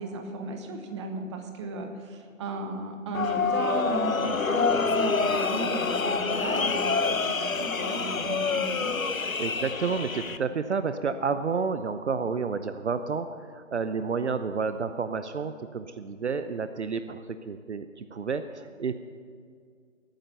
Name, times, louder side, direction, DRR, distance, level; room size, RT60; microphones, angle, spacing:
voice 1, 0.0-9.0, right 2 dB, 20° right, 5 dB, 1.1 m, -35 dB
sound 1, 3.1-10.4, left 4 dB, 90° left, 0.9 m, -27 dB
voice 2, 9.2-19.0, right 5 dB, 60° right, 10 dB, 0.8 m, -30 dB
20.0 x 9.2 x 5.5 m, 2.1 s
figure-of-eight pair, 145°, 40 cm